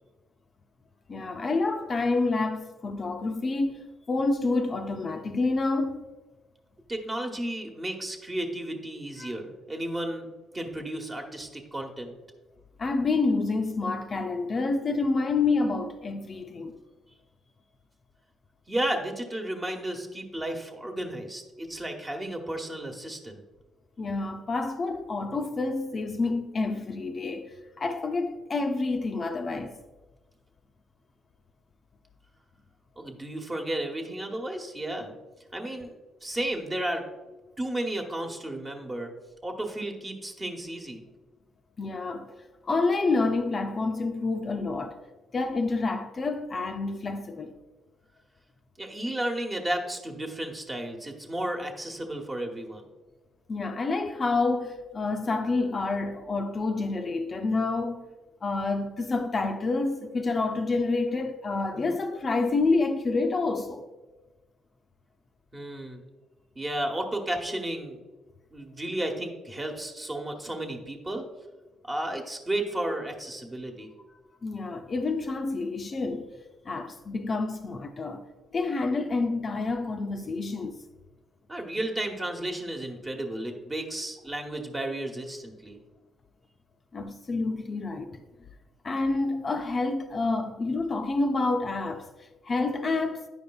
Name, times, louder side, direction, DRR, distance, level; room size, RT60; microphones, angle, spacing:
voice 1, 1.1-6.1 9.2-9.3 12.8-16.8 24.0-29.8 41.8-42.3 42.7-45.0 45.3-47.5 53.5-58.1 58.4-63.8 74.4-76.3 76.7-78.2 78.5-80.8 86.9-88.2 88.8-93.3, left 3 dB, 40° left, 0.5 m, -28 dB
voice 2, 6.9-10.3 10.5-12.1 18.7-23.4 33.0-35.1 35.5-35.9 36.2-37.0 37.6-39.1 39.4-41.1 48.8-52.9 61.7-61.9 65.5-66.0 66.5-68.0 68.5-71.2 71.8-73.9 81.5-85.8, right 1 dB, 25° right, 1.1 m, -33 dB
9.4 x 5.1 x 2.3 m
cardioid pair, 80°, 0 cm